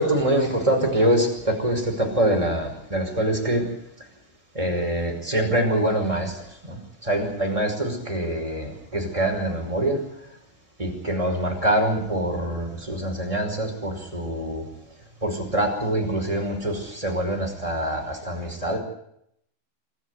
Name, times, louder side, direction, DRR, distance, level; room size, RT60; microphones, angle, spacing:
voice 1, 0.0-3.7 4.5-6.4 6.7-10.0 10.8-14.6 15.2-18.8, right 1 dB, 10° right, 1 dB, 5.1 m, -24 dB
27.5 x 13.5 x 9.7 m, 0.74 s
omnidirectional pair, 4.8 m